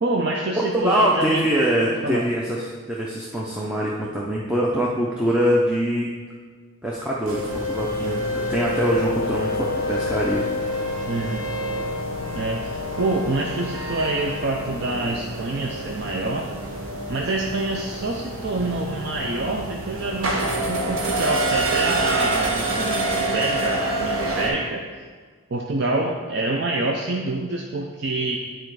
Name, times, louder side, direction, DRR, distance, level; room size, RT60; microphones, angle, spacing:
voice 1, 0.0-1.4 1.8-2.2 11.1-11.5 12.3-16.5 17.1-24.8 25.5-28.4, right 2 dB, 55° right, 0 dB, 0.5 m, -26 dB
voice 2, 0.6-6.1 6.8-10.5, equal, 5° right, -5 dB, 0.6 m, -23 dB
sound 1, 7.3-24.5, right 1 dB, 85° right, 1.2 m, -27 dB
Brass instrument, 8.9-15.0, left 6 dB, 65° left, 0.4 m, -34 dB
9.0 x 4.4 x 4.6 m, 1.5 s
head